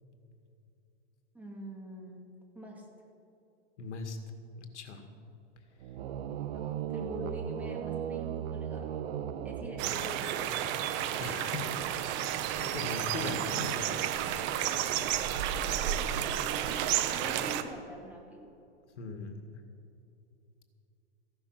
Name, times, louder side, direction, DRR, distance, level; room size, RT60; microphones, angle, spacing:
voice 1, 1.3-2.2 2.5-2.8 6.5-8.9 9.4-10.4 15.5-18.5, equal, 5° right, -1 dB, 2.5 m, -45 dB
voice 2, 3.8-4.2 4.6-5.0 11.2-11.6 12.1-13.7 19.0-19.3, left 4 dB, 80° left, 5 dB, 2.0 m, -39 dB
sound 1, 5.8-10.5, right 9 dB, 60° right, 0.9 m, -37 dB
sound 2, 9.8-17.6, right 10 dB, 30° right, 0.9 m, -31 dB
15.0 x 11.5 x 6.0 m, 2.7 s
hypercardioid pair, 130°, 35 cm